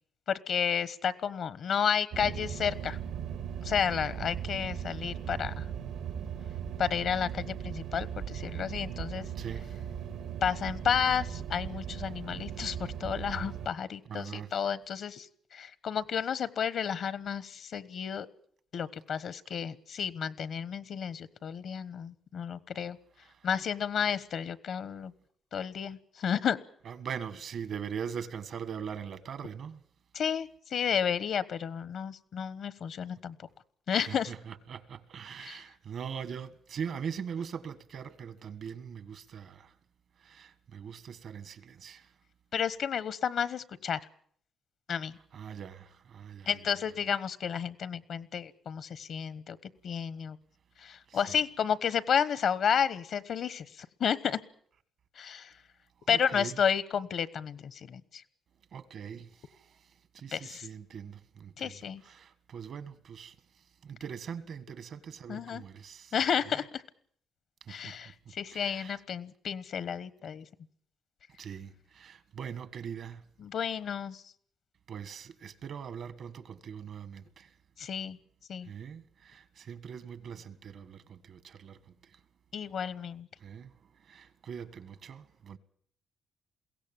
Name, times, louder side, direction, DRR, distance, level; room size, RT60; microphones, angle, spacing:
voice 1, 0.3-3.0 3.6-5.6 6.8-9.3 10.4-18.3 18.7-23.0 23.4-25.1 25.5-26.6 30.1-33.3 33.9-34.3 35.4-35.6 42.5-44.0 44.9-45.2 46.5-49.6 49.8-50.4 50.8-54.4 55.1-55.5 56.1-58.2 60.3-60.7 61.6-62.0 65.3-65.6 66.1-66.8 67.7-70.5 73.4-74.2 77.8-78.2 78.5-78.7 82.5-83.3, left 7 dB, 65° left, 1.2 m, -32 dB
sound 1, 2.1-13.7, right 8 dB, 85° right, 2.3 m, -38 dB
voice 2, 9.3-9.8 14.1-14.5 23.2-23.5 26.8-29.8 33.9-39.7 40.2-42.1 45.3-46.7 51.1-51.4 56.1-56.6 58.7-59.8 60.1-63.3 63.8-66.1 67.6-67.9 68.5-69.0 71.4-73.3 74.9-77.5 78.6-81.8 82.1-82.2 83.4-83.7 84.0-85.6, right 7 dB, 65° right, 1.6 m, -42 dB
22.0 x 16.5 x 8.9 m
cardioid pair, 90°, 0 cm